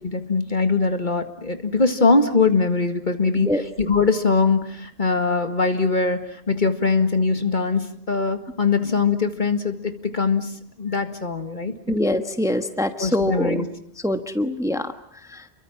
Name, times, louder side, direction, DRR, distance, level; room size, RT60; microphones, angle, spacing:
voice 1, 0.0-11.7 13.0-13.7, left 4 dB, 50° left, 8 dB, 2.0 m, -22 dB
voice 2, 11.9-13.6 14.0-14.9 15.3-15.4, left 1 dB, 5° right, 8 dB, 1.3 m, -24 dB
29.0 x 23.0 x 7.3 m, 0.62 s
omnidirectional pair, 1.1 m